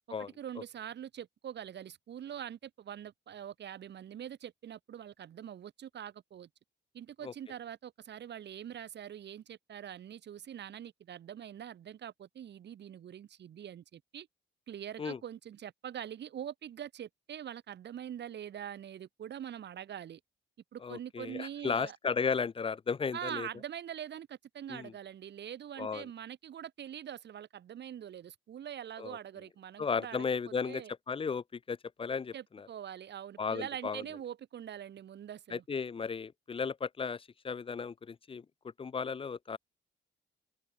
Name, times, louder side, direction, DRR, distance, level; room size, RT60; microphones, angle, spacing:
voice 1, 0.4-6.5 6.9-14.3 14.7-20.2 20.7-22.0 23.1-30.2 30.7-30.9 32.3-35.6, right 10 dB, 60° right, 2.1 m, -44 dB
voice 2, 20.8-23.5 24.7-24.9 25.8-26.0 29.0-29.2 29.8-32.7 33.4-34.0 35.5-38.4 38.8-39.6, left 5 dB, 25° left, 0.5 m, -35 dB
cardioid pair, 90°, 20 cm